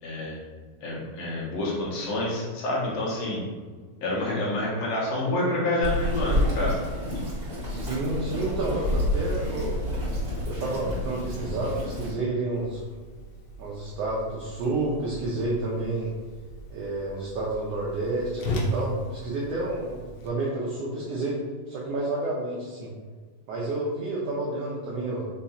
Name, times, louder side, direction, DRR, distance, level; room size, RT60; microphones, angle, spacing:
voice 1, 0.0-0.4 0.8-3.4 4.0-6.8, left 1 dB, 70° left, -4 dB, 1.8 m, -28 dB
Bird vocalization bird call bird song, 5.8-12.1, left 1 dB, 65° right, 0.8 m, -29 dB
voice 2, 7.6-9.8 10.5-12.8 13.6-16.1 16.7-21.4 21.7-22.9 23.5-25.3, right 2 dB, 90° right, -5 dB, 1.4 m, -30 dB
Whoosh swoosh swish, 12.5-20.3, equal, 90° left, 1.4 m, -37 dB
5.4 x 2.3 x 4.1 m, 1.5 s
omnidirectional pair, 3.8 m